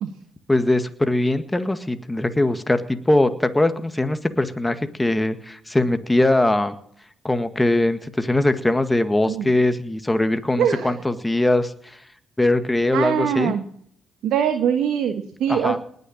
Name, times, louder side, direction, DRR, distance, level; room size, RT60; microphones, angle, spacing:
voice 1, 0.5-6.7 7.2-12.0 12.4-13.5 15.5-15.8, left 1 dB, 15° left, 9 dB, 1.8 m, -21 dB
voice 2, 10.6-11.0 12.9-13.6 14.2-15.8, right 8 dB, 70° right, 7 dB, 1.4 m, -22 dB
19.5 x 6.8 x 8.6 m, 0.66 s
hypercardioid pair, 50°, 0 cm